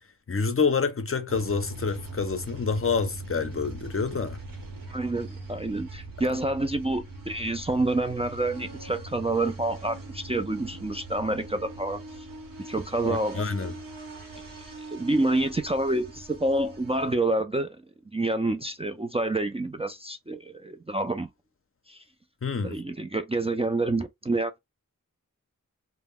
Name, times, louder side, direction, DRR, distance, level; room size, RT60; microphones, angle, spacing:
voice 1, 0.3-4.4 13.0-13.7 22.4-22.8, left 5 dB, 40° left, 0.5 m, -27 dB
sound 1, 1.3-17.1, right 2 dB, 80° right, 0.9 m, -41 dB
voice 2, 4.9-12.0 12.6-13.4 14.8-17.8 18.1-21.3 21.9-22.0 22.6-24.6, right 2 dB, 20° right, 0.3 m, -28 dB
2.2 x 2.0 x 3.6 m
wide cardioid pair, 45°, 33 cm